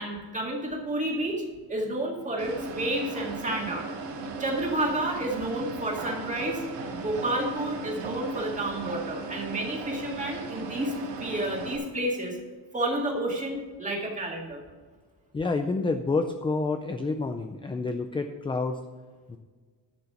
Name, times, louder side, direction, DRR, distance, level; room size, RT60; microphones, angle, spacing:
voice 1, 0.0-3.9 4.4-6.6 6.9-10.9 11.2-12.4 12.7-14.6, right 1 dB, 15° right, 0 dB, 2.1 m, -30 dB
sound 1, 2.4-11.8, right 3 dB, 70° right, 2.4 m, -36 dB
voice 2, 15.3-18.8 19.3-19.4, left 3 dB, 15° left, 7 dB, 0.3 m, -28 dB
12.0 x 6.8 x 5.8 m, 1.5 s
cardioid pair, 160°, 44 cm